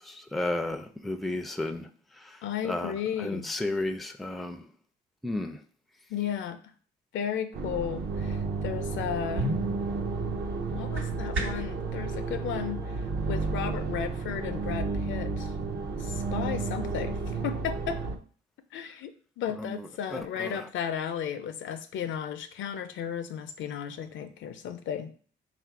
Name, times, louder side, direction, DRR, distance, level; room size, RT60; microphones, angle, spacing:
voice 1, 0.1-1.9 2.6-4.6 5.2-5.6 19.6-20.6, left 2 dB, ahead, 0.4 m, -33 dB
voice 2, 2.4-3.5 6.1-6.6 7.1-9.5 10.7-13.0 13.3-15.5 16.0-18.0 18.7-19.1 19.4-25.1, left 8 dB, 75° left, 0.5 m, -34 dB
sound 1, 7.5-18.2, right 4 dB, 55° right, 0.6 m, -32 dB
sound 2, 9.3-11.8, equal, 75° right, 1.0 m, -35 dB
3.6 x 2.5 x 4.5 m
cardioid pair, 90°, 20 cm